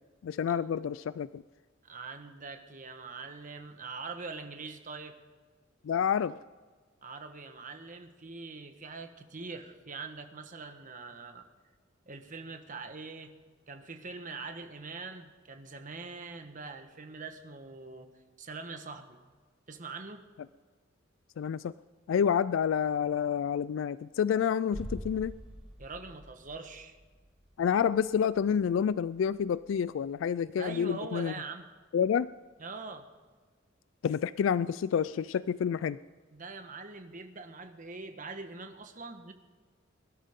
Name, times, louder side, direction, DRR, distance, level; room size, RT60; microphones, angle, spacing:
voice 1, 0.2-1.4 5.8-6.4 21.4-21.7 22.1-25.3 27.6-31.3 31.9-32.3 34.0-36.0, left 7 dB, 75° left, 17 dB, 0.3 m, -28 dB
voice 2, 1.8-5.2 7.0-11.5 12.0-13.3 13.7-18.1 18.4-19.2 19.7-20.2 25.8-27.0 30.6-31.7 32.6-33.1 36.3-39.3, right 4 dB, 40° right, 7 dB, 1.3 m, -43 dB
sound 1, 24.7-30.4 30.7-30.8, equal, 5° right, 1.5 m, -47 dB
22.5 x 12.5 x 3.7 m, 1.4 s
head